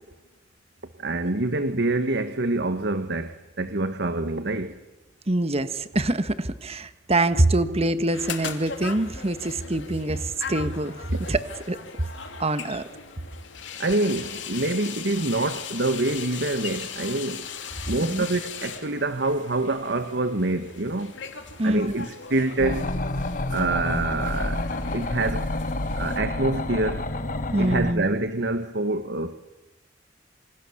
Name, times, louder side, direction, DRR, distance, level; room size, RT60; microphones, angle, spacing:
voice 1, 1.0-4.8 13.8-17.5 17.9-21.1 21.6-22.9 23.5-24.6 24.9-25.5 26.0-27.0 27.6-29.3, right 2 dB, 65° right, 9 dB, 1.4 m, -26 dB
voice 2, 5.3-11.8 12.4-12.8 18.0-18.3 21.6-22.0 27.5-28.1, right 2 dB, 35° right, 11 dB, 1.4 m, -25 dB
sound 1, 8.1-26.2, left 6 dB, 75° left, 2.7 m, -39 dB
sound 2, 22.6-27.9, left 2 dB, 45° left, 1.6 m, -29 dB
27.5 x 26.0 x 7.2 m, 1.0 s
head